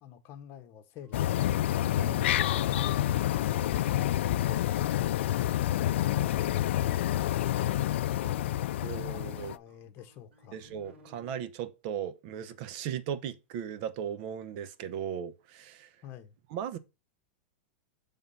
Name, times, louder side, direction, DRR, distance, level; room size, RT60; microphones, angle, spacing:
voice 1, 0.0-1.3 8.2-10.6 16.0-16.3, left 10 dB, 35° left, 1.1 m, -48 dB
sound 1, 1.0-5.7 6.4-11.3, equal, 75° right, 2.2 m, -57 dB
sound 2, 1.1-9.6, left 13 dB, 75° left, 0.4 m, -28 dB
voice 2, 2.0-2.7 3.6-3.8 8.8-9.6 10.5-15.9 16.5-16.8, right 9 dB, 50° right, 0.9 m, -37 dB
7.1 x 3.7 x 5.4 m
supercardioid pair, 145°, 6 cm